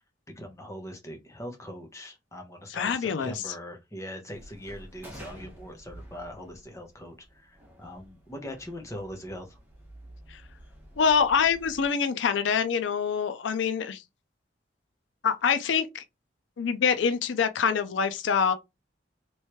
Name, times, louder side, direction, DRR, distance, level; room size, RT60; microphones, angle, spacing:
voice 1, 0.4-9.6, equal, 15° left, 0.9 m, -41 dB
voice 2, 2.7-3.3 10.3-10.4 11.0-14.0 15.2-16.0 16.6-18.5, left 6 dB, 90° left, 0.4 m, -25 dB
sound 1, 4.3-11.9, right 1 dB, 10° right, 1.1 m, -50 dB
3.2 x 3.1 x 3.0 m
head